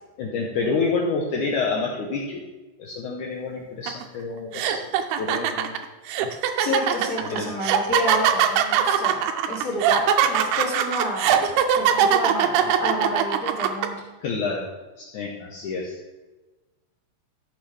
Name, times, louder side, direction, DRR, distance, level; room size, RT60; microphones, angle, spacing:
voice 1, 0.2-2.4 2.8-4.9 5.2-5.8 7.3-7.5 14.2-14.7 15.0-16.0, left 4 dB, 85° left, -1 dB, 1.7 m, -28 dB
sound 1, 3.9-4.0 4.5-13.9, right 9 dB, 80° right, 2.5 m, -21 dB
voice 2, 6.6-14.0, left 1 dB, 50° left, -6 dB, 1.1 m, -30 dB
14.0 x 6.3 x 3.3 m, 1.2 s
omnidirectional pair, 4.7 m